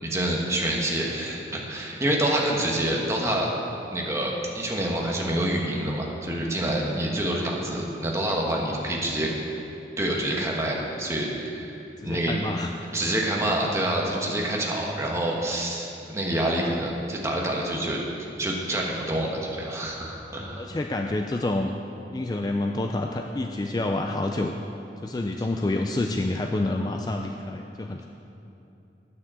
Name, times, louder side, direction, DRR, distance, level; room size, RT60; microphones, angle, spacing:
voice 1, 0.0-3.5 3.9-9.3 10.0-11.7 12.0-12.3 12.9-18.0 18.4-20.7, right 1 dB, 15° right, -2 dB, 1.2 m, -27 dB
voice 2, 12.0-12.7 20.6-21.7 22.1-24.7 25.0-28.1, left 2 dB, 20° left, 3 dB, 0.3 m, -28 dB
9.5 x 6.5 x 7.5 m, 2.8 s
head